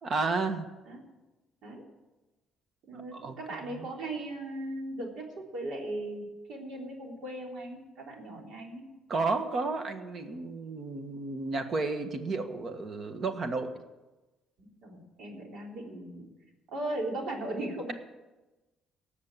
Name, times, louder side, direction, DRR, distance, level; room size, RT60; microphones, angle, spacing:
voice 1, 0.0-0.7 2.9-3.4 3.7-3.9 9.1-13.8, right 3 dB, 45° right, 7 dB, 1.4 m, -32 dB
voice 2, 2.8-8.9 14.6-16.3 16.7-17.9, right 1 dB, 70° right, 0 dB, 3.5 m, -38 dB
18.0 x 6.8 x 7.4 m, 1.1 s
cardioid pair, 105°, 0 cm